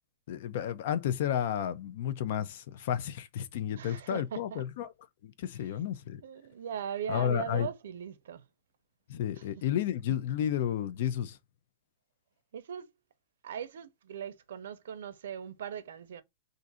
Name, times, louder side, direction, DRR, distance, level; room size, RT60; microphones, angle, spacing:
voice 1, 0.3-4.9 5.2-6.2 7.1-7.7 9.1-11.4, left 10 dB, 50° left, 0.4 m, -32 dB
voice 2, 3.7-4.6 5.6-5.7 6.2-8.4 9.4-9.5 12.5-12.9 13.4-16.2, right 8 dB, 80° right, 0.5 m, -39 dB
2.5 x 2.5 x 4.0 m
supercardioid pair, 175°, 0 cm